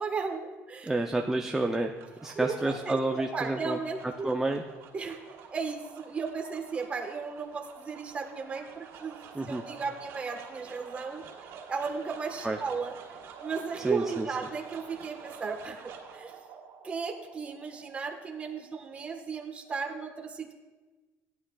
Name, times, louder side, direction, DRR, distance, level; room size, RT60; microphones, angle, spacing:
voice 1, 0.0-0.9 2.3-4.3 4.9-5.2 5.5-11.2 11.7-12.9 13.4-16.3 16.8-20.5, right 5 dB, 25° right, 3 dB, 1.2 m, -35 dB
voice 2, 0.8-1.9 2.2-3.8 4.2-4.6 9.3-9.6 12.4-12.6 13.8-14.3, right 2 dB, 10° right, 2 dB, 0.5 m, -29 dB
sound 1, 1.8-20.0, right 6 dB, 65° right, 2.9 m, -49 dB
16.5 x 11.0 x 2.3 m, 1.2 s
cardioid pair, 135°, 5 cm